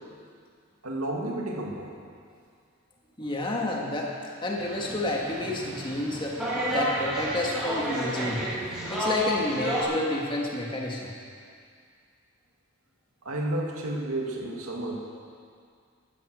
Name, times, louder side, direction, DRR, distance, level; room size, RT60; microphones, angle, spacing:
voice 1, 0.8-2.0 13.2-15.0, right 1 dB, 80° right, -1 dB, 2.4 m, -31 dB
voice 2, 3.2-4.1 4.4-6.4 6.7-8.5 8.9-11.1, left 1 dB, 20° left, -2 dB, 2.0 m, -30 dB
sound 1, 4.6-9.8, equal, 5° right, 4.9 m, -31 dB
14.0 x 13.5 x 6.5 m, 2.2 s
head